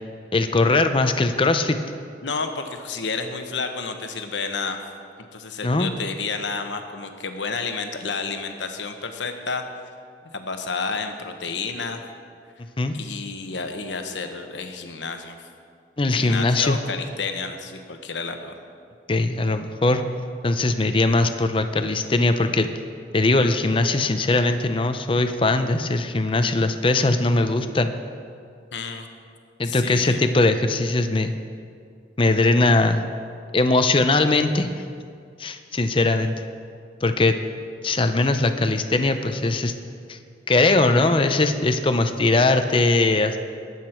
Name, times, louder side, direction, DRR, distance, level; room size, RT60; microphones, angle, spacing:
voice 1, 0.3-1.8 5.6-5.9 12.8-12.9 16.0-16.8 19.1-20.0 20.4-22.7 23.1-27.9 29.6-31.3 32.2-33.0 33.5-34.7 35.4-36.3 37.0-37.4 37.8-39.7 40.1-40.2 40.5-43.4, left 2 dB, 30° left, 8 dB, 0.6 m, -20 dB
voice 2, 2.2-4.8 5.3-9.6 10.3-12.0 12.9-15.5 16.1-18.5 28.7-29.1 29.6-30.2, left 4 dB, 85° left, 6 dB, 1.1 m, -30 dB
20.0 x 8.2 x 4.5 m, 2.2 s
head